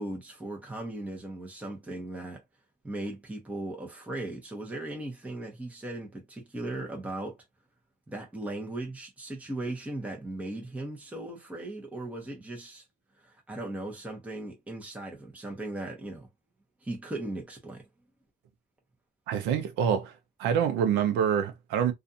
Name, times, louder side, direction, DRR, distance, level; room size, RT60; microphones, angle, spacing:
voice 1, 0.0-2.4 2.8-7.4 8.1-12.8 13.2-16.3 16.8-17.8, right 2 dB, 10° right, 0.8 m, -37 dB
voice 2, 19.3-20.1 20.4-21.9, right 8 dB, 90° right, 0.6 m, -26 dB
2.4 x 2.4 x 2.7 m
cardioid pair, 110°, 17 cm